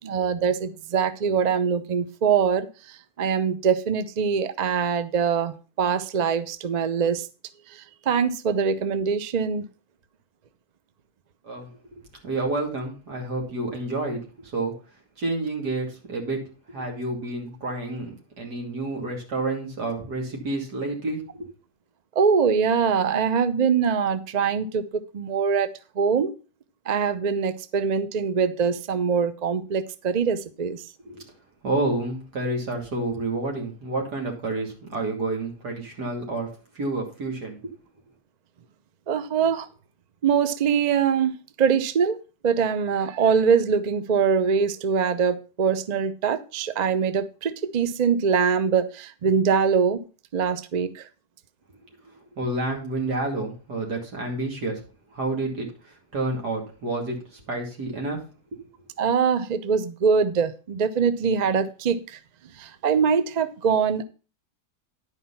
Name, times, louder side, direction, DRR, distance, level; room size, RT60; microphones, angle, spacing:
voice 1, 0.0-7.3 7.7-9.6 22.2-25.7 26.0-26.3 26.9-30.8 39.1-39.7 40.2-50.0 50.3-51.1 59.0-62.2 62.6-64.0, right 6 dB, 50° right, 0.5 m, -23 dB
voice 2, 11.4-11.8 12.2-14.7 15.2-21.5 31.0-31.3 31.6-36.5 36.7-37.6 52.4-54.8 55.1-58.2, right 2 dB, 85° right, 3.2 m, -29 dB
11.0 x 5.0 x 5.6 m
omnidirectional pair, 1.7 m